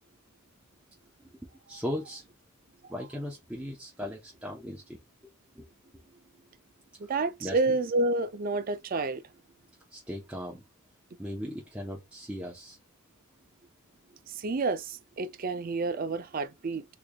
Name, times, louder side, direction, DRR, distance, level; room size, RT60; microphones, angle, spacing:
voice 1, 1.7-2.2 2.9-5.0 5.6-5.7 7.4-7.6 9.9-10.6 11.2-12.8, equal, 5° right, 0.7 m, -37 dB
voice 2, 7.1-9.2 14.3-16.9, right 3 dB, 40° right, 0.4 m, -29 dB
3.7 x 3.2 x 2.3 m
head